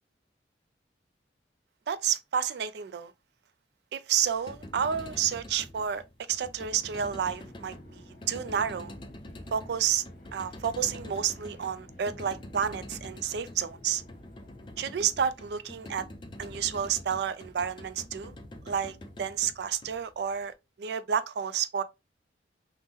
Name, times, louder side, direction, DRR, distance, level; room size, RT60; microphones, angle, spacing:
voice 1, 1.9-3.1 3.9-6.0 6.3-8.9 9.5-10.0 10.3-14.0 14.8-16.1 16.4-18.3 18.7-21.8, right 8 dB, 65° right, 0.3 m, -30 dB
sound 1, 4.2-20.4, left 1 dB, 25° left, 0.4 m, -46 dB
sound 2, 7.2-16.2, left 1 dB, 40° left, 1.0 m, -52 dB
3.5 x 2.1 x 2.7 m
head